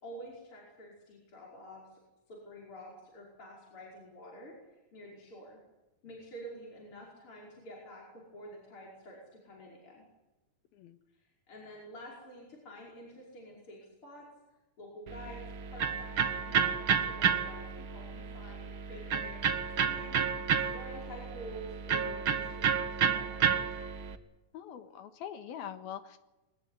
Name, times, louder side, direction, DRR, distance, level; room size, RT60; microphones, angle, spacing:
voice 1, 0.0-2.0 2.3-5.6 6.0-10.0 11.1-14.3 14.8-15.4 15.7-20.2 20.5-23.8, equal, 35° left, -3 dB, 6.0 m, -49 dB
Electric guitar, 15.1-24.1, right 7 dB, 65° right, 1.2 m, -31 dB
voice 2, 24.5-26.2, left 9 dB, 80° left, 9 dB, 3.3 m, -43 dB
22.5 x 19.0 x 10.0 m, 1.1 s
omnidirectional pair, 4.4 m